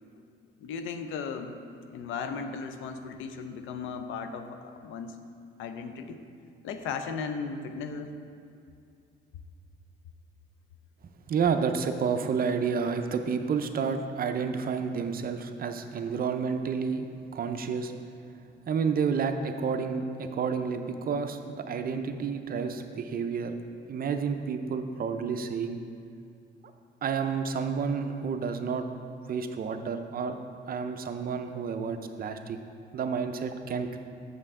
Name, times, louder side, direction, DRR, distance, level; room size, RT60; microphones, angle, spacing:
voice 1, 0.6-1.6 1.9-5.2 5.6-6.2 6.6-8.1, left 5 dB, 90° left, 8 dB, 0.5 m, -36 dB
voice 2, 11.3-17.1 17.3-17.9 18.7-23.5 23.9-25.8 27.0-28.9 29.3-30.4 30.7-32.6 32.9-34.0, right 6 dB, 50° right, 7 dB, 0.5 m, -30 dB
7.6 x 5.4 x 3.6 m, 2.4 s
cardioid pair, 90°, 20 cm